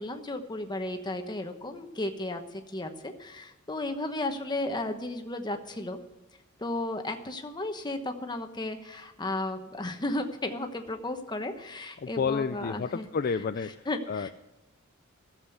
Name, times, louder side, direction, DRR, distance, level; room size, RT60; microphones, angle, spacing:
voice 1, 0.0-6.0 6.6-13.1 13.9-14.3, left 2 dB, 20° left, 6 dB, 1.1 m, -34 dB
voice 2, 12.0-14.3, left 5 dB, 45° left, 10 dB, 0.4 m, -31 dB
13.5 x 7.6 x 8.1 m, 0.98 s
head